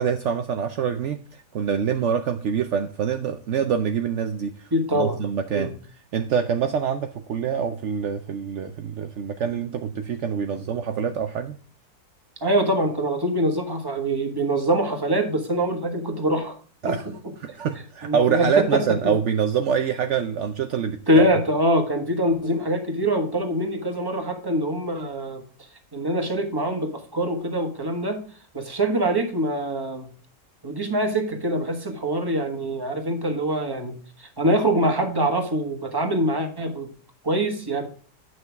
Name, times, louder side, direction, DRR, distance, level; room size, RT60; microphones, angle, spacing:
voice 1, 0.0-5.8 6.1-11.6 16.8-17.1 17.4-21.2, right 7 dB, 70° right, 0.7 m, -25 dB
voice 2, 4.7-5.2 5.5-5.7 12.4-16.5 16.8-17.1 18.0-19.2 21.1-25.4 25.9-28.2 28.5-30.1 30.6-36.9 37.2-37.9, right 1 dB, 15° right, 1.3 m, -24 dB
9.1 x 6.1 x 3.4 m
omnidirectional pair, 1.9 m